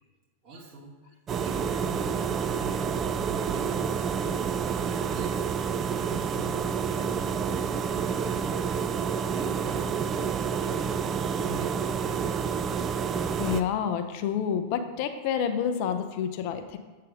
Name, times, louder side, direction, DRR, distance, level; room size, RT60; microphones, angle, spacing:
voice 1, 0.4-3.0 3.3-4.4 4.8-5.5 6.0-8.9 9.1-10.0 10.6-12.4, right 1 dB, 45° right, -6 dB, 1.7 m, -45 dB
sound 1, 1.3-13.6, right 6 dB, 25° right, 0.3 m, -29 dB
voice 2, 13.4-16.8, left 8 dB, 45° left, 9 dB, 0.5 m, -28 dB
7.4 x 6.4 x 2.6 m, 1.3 s
figure-of-eight pair, 90°, 0 cm